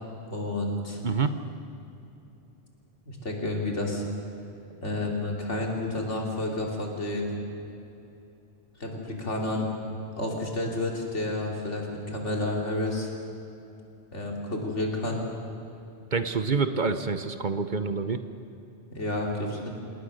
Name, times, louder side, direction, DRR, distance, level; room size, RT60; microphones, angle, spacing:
voice 1, 0.3-1.0 3.1-4.0 4.8-7.4 8.8-9.7 10.2-13.1 14.1-15.2 18.9-19.7, left 2 dB, 85° left, 0 dB, 3.6 m, -30 dB
voice 2, 16.1-18.2, right 4 dB, 45° right, 10 dB, 1.0 m, -27 dB
27.5 x 19.0 x 6.6 m, 2.8 s
omnidirectional pair, 1.2 m